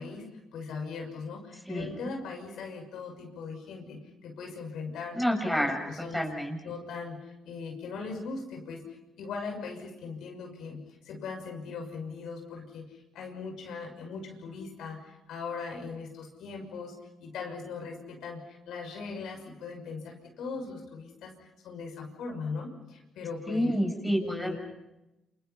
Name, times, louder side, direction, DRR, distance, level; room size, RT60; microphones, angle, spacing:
voice 1, 0.0-6.3 6.6-8.8 9.2-16.9 17.2-23.7 24.2-24.6, left 4 dB, 80° left, 2 dB, 6.4 m, -39 dB
voice 2, 1.7-2.1 5.1-6.6 23.5-24.6, equal, ahead, 2 dB, 6.9 m, -29 dB
29.5 x 28.0 x 5.8 m, 0.96 s
cardioid pair, 90°, 0 cm